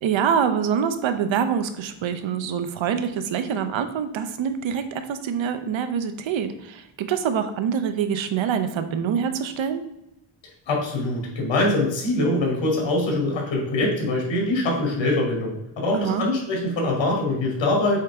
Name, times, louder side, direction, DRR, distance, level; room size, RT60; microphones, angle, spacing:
voice 1, 0.0-9.8 15.9-16.2, right 7 dB, 80° right, 10 dB, 0.9 m, -25 dB
voice 2, 10.7-18.0, left 2 dB, 70° left, -1 dB, 2.8 m, -23 dB
7.6 x 3.6 x 4.8 m, 0.85 s
cardioid pair, 130°, 45 cm